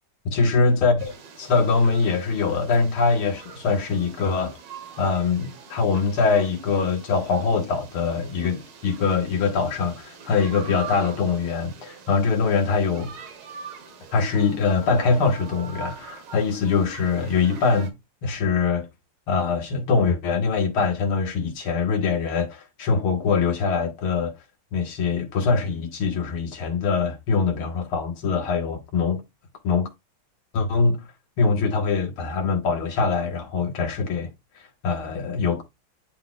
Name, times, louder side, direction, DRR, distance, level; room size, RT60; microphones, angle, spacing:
voice 1, 0.3-4.6 5.0-13.1 14.1-17.9 18.2-18.9 19.3-24.3 24.7-29.2 29.6-29.9 30.5-31.0 31.4-34.3 34.8-35.6, left 4 dB, 85° left, 2.4 m, -23 dB
sound 1, 1.0-17.9, right 6 dB, 80° right, 2.1 m, -43 dB
10.5 x 3.9 x 2.4 m
omnidirectional pair, 2.3 m